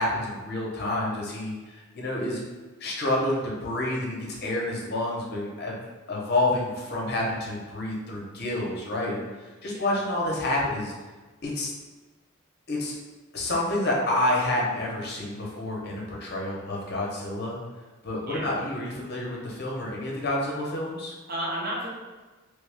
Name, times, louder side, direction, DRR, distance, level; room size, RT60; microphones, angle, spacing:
voice 1, 0.0-2.4 2.8-5.8 6.1-10.9 11.4-11.7 12.7-13.0 13.3-17.6 18.0-21.1, left 1 dB, 50° left, -2 dB, 0.7 m, -29 dB
voice 2, 9.6-10.0 18.3-18.5 21.3-21.9, right 1 dB, 45° right, -3 dB, 0.7 m, -33 dB
3.2 x 2.3 x 3.3 m, 1.3 s
head